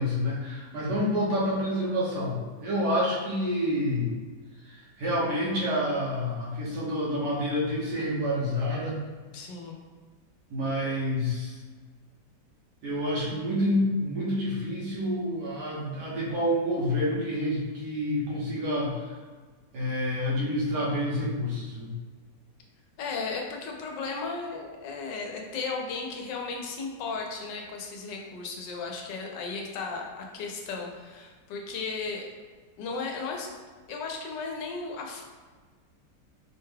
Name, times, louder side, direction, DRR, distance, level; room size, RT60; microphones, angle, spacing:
voice 1, 0.0-4.1 4.7-9.0 10.5-11.5 12.8-19.1 19.7-21.9, equal, 75° right, -6 dB, 1.6 m, -28 dB
voice 2, 9.3-9.8 23.0-32.2 32.8-33.5 33.9-35.2, left 4 dB, 85° left, 1 dB, 1.3 m, -35 dB
5.0 x 2.2 x 3.2 m, 1.5 s
omnidirectional pair, 1.9 m